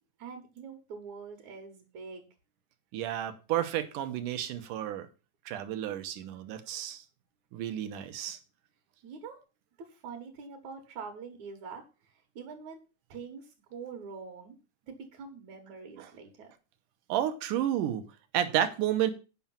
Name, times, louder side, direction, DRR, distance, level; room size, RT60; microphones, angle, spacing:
voice 1, 0.2-2.3 9.0-9.4 9.8-12.8 13.1-14.6 14.8-16.5, right 5 dB, 70° right, 3 dB, 2.8 m, -44 dB
voice 2, 2.9-5.1 5.5-7.0 7.5-8.4 16.0-16.1 17.1-18.0 18.3-19.1, right 11 dB, 90° right, 10 dB, 2.6 m, -31 dB
8.6 x 5.9 x 7.1 m, 0.32 s
omnidirectional pair, 3.5 m